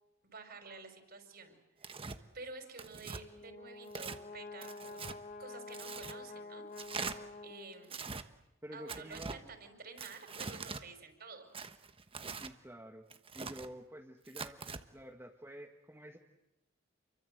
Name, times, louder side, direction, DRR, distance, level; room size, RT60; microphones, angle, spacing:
voice 1, 0.2-5.0 5.4-7.1 7.4-8.0 8.7-11.5, right 3 dB, 50° right, 6 dB, 5.4 m, -51 dB
Tearing, 1.8-2.2 2.8-3.2 3.9-4.2 4.6-5.2 5.7-6.2 6.8-7.2 7.8-8.2 8.9-9.4 10.0-10.8 11.5-12.5 13.1-13.7 14.3-14.8, right 4 dB, 30° right, 1.2 m, -43 dB
Brass instrument, 3.0-8.1, left 3 dB, 35° left, 1.5 m, -48 dB
voice 2, 8.6-9.4 12.3-13.0 13.3-14.6 14.9-16.2, equal, 15° right, 1 dB, 1.7 m, -49 dB
29.0 x 23.5 x 8.0 m, 0.95 s
head